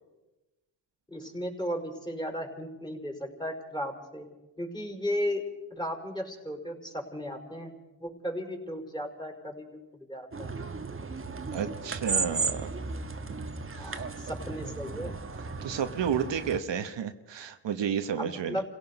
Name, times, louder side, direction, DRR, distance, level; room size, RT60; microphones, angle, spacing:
voice 1, 1.1-4.3 4.6-5.4 5.7-7.7 8.0-10.5 13.8-15.1 18.2-18.6, equal, 10° left, 2 dB, 5.0 m, -35 dB
sound 1, 10.3-16.6, right 4 dB, 30° right, 1.3 m, -35 dB
voice 2, 11.5-12.7 13.7-14.0 15.6-18.6, right 8 dB, 75° right, 8 dB, 1.3 m, -31 dB
29.0 x 17.0 x 5.5 m, 1.1 s
cardioid pair, 80°, 44 cm